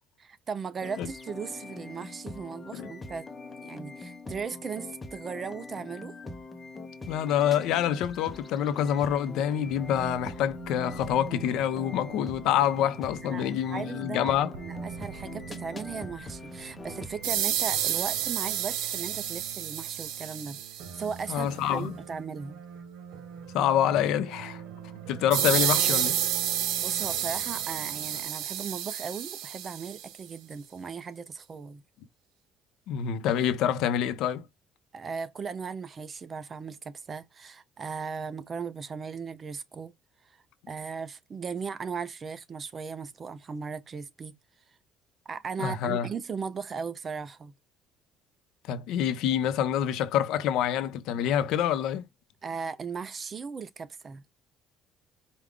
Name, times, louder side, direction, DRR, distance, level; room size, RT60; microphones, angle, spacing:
voice 1, 0.2-3.3 3.6-6.2 13.2-20.6 20.9-22.6 26.8-31.8 34.9-39.9 40.7-44.3 45.3-47.5 52.4-54.2, right 5 dB, 25° right, 0.4 m, -37 dB
sound 1, 0.8-17.3, left 3 dB, 15° left, 0.7 m, -43 dB
voice 2, 7.1-14.5 21.3-21.9 23.5-24.6 25.1-26.2 32.9-34.5 45.6-46.1 48.7-52.0, left 10 dB, 70° left, 0.7 m, -26 dB
sound 2, 9.6-28.2, right 6 dB, 70° right, 1.2 m, -45 dB
sound 3, 17.2-21.0 25.3-30.1, right 11 dB, 85° right, 0.7 m, -29 dB
4.9 x 2.3 x 3.7 m
cardioid pair, 170°, 0 cm